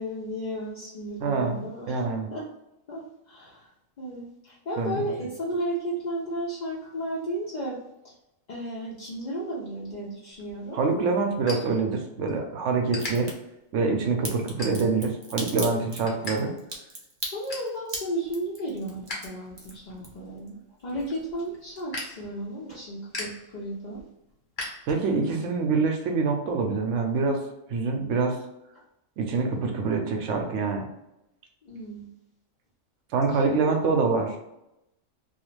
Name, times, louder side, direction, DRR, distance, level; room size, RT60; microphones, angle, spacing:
voice 1, 0.0-2.0 2.3-2.5 2.9-3.7 4.0-7.8 8.0-8.1 8.5-10.8 17.3-24.0 31.6-32.1 33.3-33.4 33.7-33.9, right 1 dB, 60° left, -5 dB, 0.4 m, -34 dB
voice 2, 1.2-2.3 4.8-5.0 10.7-13.3 13.7-16.5 24.9-27.4 27.7-28.4 29.2-30.9 33.1-34.3, right 4 dB, 70° right, 2 dB, 0.9 m, -25 dB
sound 1, 10.3-12.4 12.7-13.1 13.7-13.9 14.4-15.1 15.5-16.4 16.6-16.7 17.1-17.7 18.2-19.2 19.5-25.3, left 2 dB, 45° left, 1.0 m, -39 dB
Crack, 12.9-13.3 14.2-20.5 20.8-21.5 21.8-21.9, right 1 dB, 45° right, 0.3 m, -37 dB
2.4 x 2.4 x 3.1 m, 0.87 s
omnidirectional pair, 1.3 m